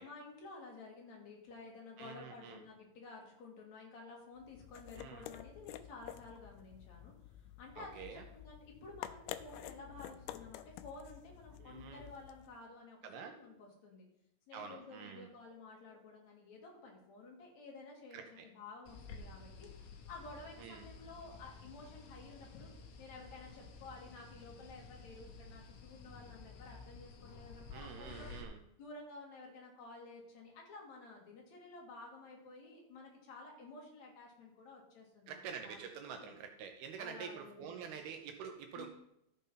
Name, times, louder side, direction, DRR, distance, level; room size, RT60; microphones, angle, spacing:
voice 1, 0.0-14.0 14.5-22.7 23.0-28.3 28.8-35.8 36.1-36.3 37.0-38.0 38.7-38.9, left 3 dB, 50° left, -1 dB, 3.0 m, -53 dB
voice 2, 2.0-2.6 5.0-5.3 7.8-8.2 11.6-12.0 13.0-13.3 14.5-15.3 18.1-18.5 20.6-20.9 27.7-28.6 35.3-38.9, right 7 dB, 75° right, 5 dB, 2.5 m, -47 dB
sound 1, 4.4-12.6, left 12 dB, 85° left, 2.2 m, -50 dB
sound 2, 18.9-28.4, left 4 dB, 70° left, 2.2 m, -53 dB
14.0 x 5.5 x 5.6 m, 0.83 s
omnidirectional pair, 5.0 m